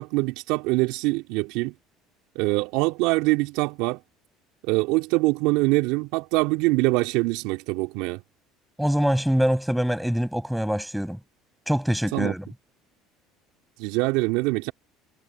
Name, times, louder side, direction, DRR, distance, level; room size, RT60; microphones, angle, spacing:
voice 1, 0.0-1.7 2.4-4.0 4.7-8.2 12.1-12.3 13.8-14.7, right 23 dB, 75° right, 4.0 m, -24 dB
voice 2, 8.8-11.2 11.7-12.4, equal, ahead, 6.9 m, -24 dB
supercardioid pair, 90°, 0 cm